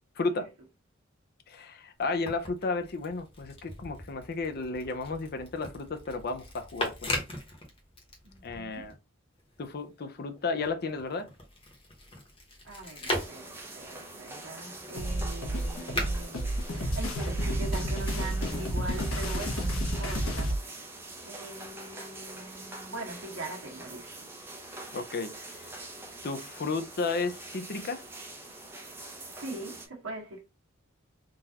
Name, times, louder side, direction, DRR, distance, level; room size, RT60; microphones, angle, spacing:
voice 1, 0.2-0.5 1.5-7.1 8.4-8.9 9.6-11.3 24.9-25.7 26.2-28.0, left 3 dB, 50° left, 0.5 m, -33 dB
sound 1, 2.0-9.0 9.3-17.4 18.3-19.1, left 1 dB, 25° left, 1.1 m, -40 dB
voice 2, 8.2-8.9 12.6-25.0 29.3-30.4, right 2 dB, 75° right, 1.3 m, -42 dB
sound 2, 13.1-29.9, right 2 dB, 10° right, 0.7 m, -44 dB
sound 3, 15.0-20.6, right 1 dB, 85° left, 1.1 m, -30 dB
3.8 x 2.5 x 2.8 m
head